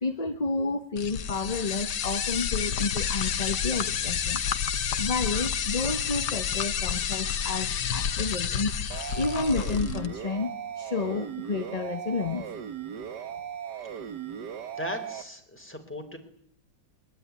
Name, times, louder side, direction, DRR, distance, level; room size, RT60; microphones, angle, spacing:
voice 1, 0.0-4.4 5.0-8.7 9.1-12.5, left 3 dB, 25° left, 8 dB, 1.2 m, -30 dB
sound 1, 1.0-10.1, left 7 dB, 85° left, 1.8 m, -29 dB
sound 2, 8.9-15.2, right 8 dB, 80° right, 1.9 m, -37 dB
voice 2, 14.7-16.2, left 1 dB, 5° left, 4 dB, 4.3 m, -37 dB
22.5 x 22.5 x 9.7 m, 0.71 s
omnidirectional pair, 1.8 m